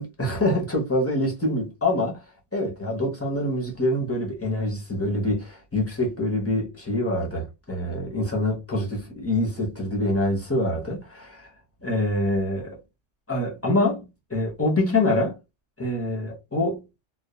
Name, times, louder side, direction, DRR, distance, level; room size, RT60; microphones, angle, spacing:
voice 1, 0.0-2.2 2.5-11.5 11.8-12.8 13.3-15.4 15.8-16.8, left 1 dB, 15° left, 0.5 m, -25 dB
2.3 x 2.1 x 2.8 m
omnidirectional pair, 1.2 m